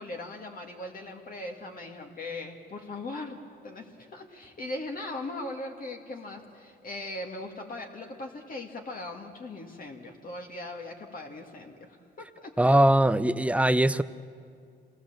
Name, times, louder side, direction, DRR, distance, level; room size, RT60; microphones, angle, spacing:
voice 1, 0.0-3.4 3.6-12.8, left 2 dB, 45° left, 2 dB, 2.2 m, -39 dB
voice 2, 12.6-14.0, right 1 dB, 5° right, 14 dB, 0.6 m, -21 dB
27.0 x 18.5 x 7.4 m, 2.3 s
cardioid pair, 90°, 20 cm